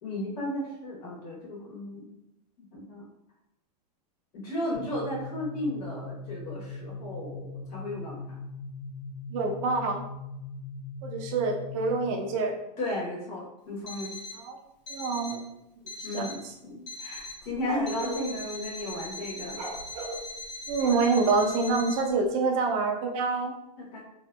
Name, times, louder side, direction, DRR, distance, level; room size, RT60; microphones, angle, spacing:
voice 1, 0.0-2.1 2.7-3.0 4.3-8.4 12.8-14.2 16.0-19.6 23.8-24.0, left 1 dB, 60° left, -3 dB, 1.1 m, -34 dB
sound 1, 4.7-12.3, left 3 dB, 20° left, 1.1 m, -40 dB
voice 2, 9.3-10.0 11.0-12.6 14.3-14.6 14.9-15.4 16.0-16.5 20.7-23.5, right 4 dB, 50° right, 2 dB, 0.5 m, -27 dB
Alarm, 13.9-14.4 14.9-15.4 15.9-16.4 16.9-17.4 17.9-22.0, left 2 dB, 85° left, 0.8 m, -40 dB
sound 2, 17.2-18.3 19.5-21.3, right 1 dB, 80° right, 0.9 m, -37 dB
2.6 x 2.5 x 2.2 m, 0.86 s
hypercardioid pair, 120°, 21 cm